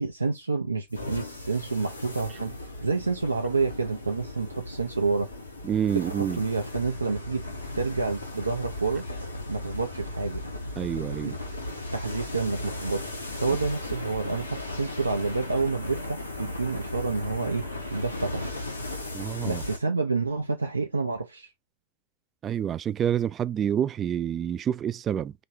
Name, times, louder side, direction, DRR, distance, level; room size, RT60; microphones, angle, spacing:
voice 1, 0.0-5.3 5.9-7.5 7.7-9.0 9.5-10.4 11.0-11.3 11.9-13.1 13.4-17.6 17.9-18.5 19.4-21.5, right 4 dB, 80° right, 0.6 m, -29 dB
sound 1, 0.9-19.8, left 2 dB, 85° left, 1.3 m, -36 dB
voice 2, 5.6-6.4 10.8-11.4 19.1-19.6 22.4-25.3, right 9 dB, 25° right, 0.3 m, -28 dB
5.1 x 3.1 x 2.7 m
figure-of-eight pair, 90°, 0 cm